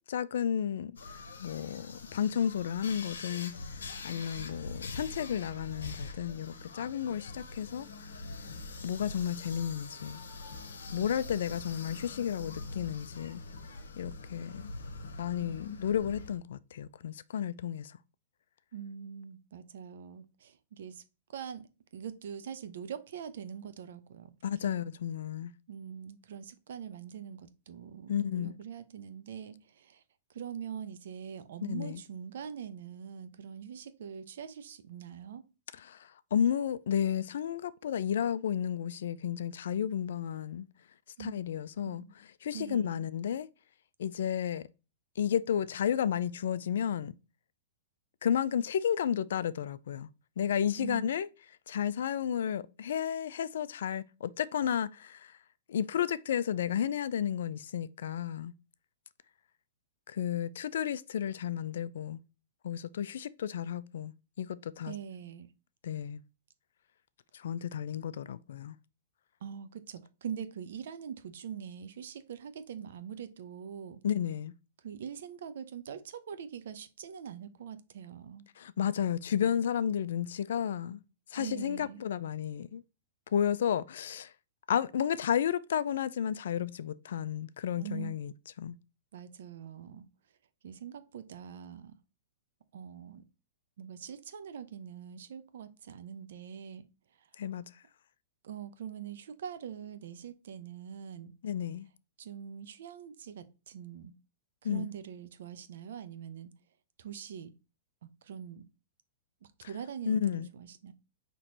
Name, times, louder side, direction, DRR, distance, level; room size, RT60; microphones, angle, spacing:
voice 1, 0.1-0.9 1.4-3.5 4.0-7.9 8.8-10.2 10.9-13.4 14.0-14.7 15.2-18.0 24.4-25.5 28.1-28.5 31.6-32.0 35.8-40.7 41.2-42.0 42.4-43.5 44.0-44.6 45.2-47.1 48.2-50.1 50.4-51.3 51.7-55.3 55.7-58.5 60.1-62.2 62.6-64.9 65.8-66.2 67.3-68.7 74.0-74.5 78.6-81.0 81.3-82.8 83.3-84.3 84.7-88.3 88.6-88.7 97.4-97.6 101.4-101.9 104.6-104.9 110.1-110.5, left 9 dB, 75° left, 0.3 m, -32 dB
sound 1, 1.0-16.4, left 3 dB, 90° left, 0.8 m, -44 dB
voice 2, 18.7-21.0 21.3-24.3 25.7-30.0 30.3-35.4 41.2-41.3 41.8-42.1 42.5-43.0 50.8-51.1 64.8-65.5 69.4-74.0 74.8-78.5 81.4-82.0 87.8-88.1 89.1-90.1 90.6-91.9 92.7-93.2 93.8-96.9 98.4-101.3 102.2-104.2 104.6-106.5 107.0-107.5 108.2-108.6 109.6-110.9, right 8 dB, 70° right, 0.6 m, -43 dB
4.4 x 3.0 x 3.8 m
hypercardioid pair, 125°, 0 cm